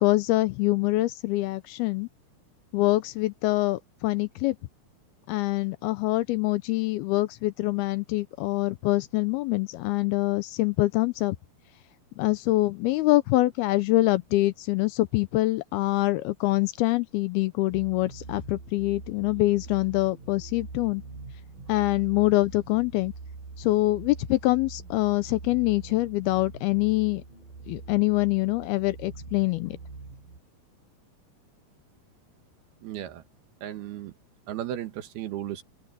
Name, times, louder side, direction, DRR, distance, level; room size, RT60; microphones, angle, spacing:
voice 1, 0.0-2.1 2.7-4.6 5.3-11.4 12.2-21.0 21.7-23.1 23.6-27.2 27.7-29.8, left 19 dB, 80° left, 2.3 m, -25 dB
sound 1, 17.7-30.4, right 4 dB, 50° right, 6.6 m, -43 dB
voice 2, 32.8-33.2 33.6-34.1 34.5-35.6, right 12 dB, 70° right, 3.3 m, -35 dB
open air
omnidirectional pair, 4.9 m